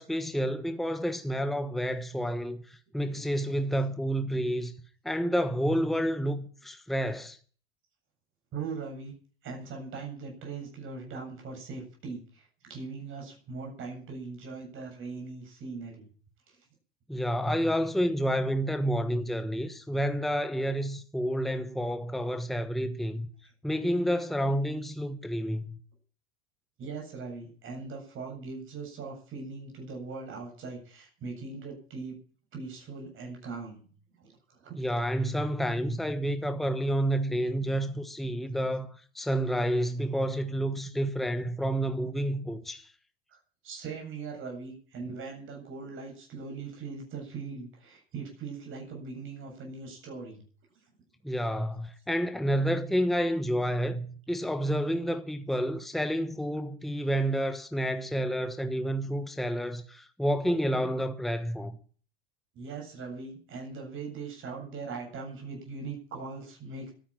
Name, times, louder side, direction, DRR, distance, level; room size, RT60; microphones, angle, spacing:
voice 1, 0.0-4.7 5.0-7.4 17.1-23.3 23.6-25.8 34.8-42.9 51.2-61.8, equal, ahead, 1.2 m, -29 dB
voice 2, 8.5-9.2 9.4-16.1 16.5-16.6 26.8-32.2 32.5-34.7 43.3-50.4 62.5-66.9, right 4 dB, 40° right, 7.7 m, -40 dB
13.5 x 10.0 x 9.0 m
hypercardioid pair, 105°, 31 cm